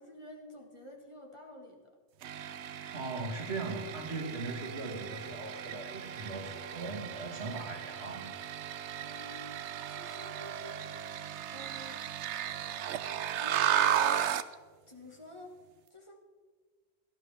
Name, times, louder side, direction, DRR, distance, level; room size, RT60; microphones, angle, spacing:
voice 1, 0.0-1.9 9.0-9.5 9.9-10.9 11.5-12.0 13.3-13.9 14.9-15.5 15.9-16.2, left 1 dB, 25° left, 1 dB, 1.6 m, -50 dB
sound 1, 2.2-14.5, right 10 dB, 90° right, 0.9 m, -35 dB
voice 2, 2.9-8.6, right 3 dB, 70° right, 2 dB, 1.8 m, -39 dB
17.5 x 12.5 x 3.4 m, 1.5 s
omnidirectional pair, 1.1 m